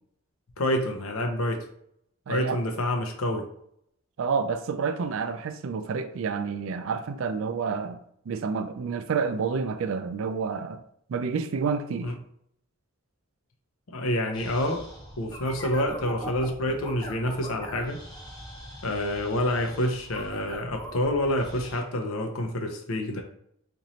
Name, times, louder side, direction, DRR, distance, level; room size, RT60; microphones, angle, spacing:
voice 1, 0.6-1.6 2.3-3.4 12.0-12.2 13.9-14.8 15.2-18.0 18.8-23.2, left 1 dB, 75° left, 0.6 m, -28 dB
voice 2, 2.3-2.6 4.2-8.0 8.3-10.8 11.1-12.1, right 5 dB, 65° right, 0.3 m, -29 dB
sound 1, 14.3-21.8, equal, 20° left, 0.8 m, -42 dB
3.0 x 2.6 x 4.1 m
head